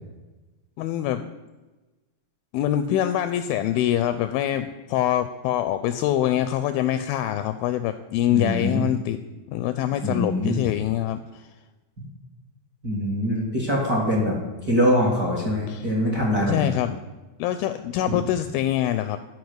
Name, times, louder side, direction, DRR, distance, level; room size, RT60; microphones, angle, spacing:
voice 1, 0.8-1.2 2.5-9.2 9.5-11.2 15.7-15.9 16.5-17.0 17.4-19.2, left 12 dB, 85° left, 11 dB, 2.1 m, -24 dB
voice 2, 8.3-8.9 10.0-10.6 12.0-12.1 12.8-14.3 14.7-16.7, equal, 40° right, -3 dB, 1.4 m, -23 dB
12.0 x 5.2 x 7.9 m, 1.1 s
omnidirectional pair, 4.6 m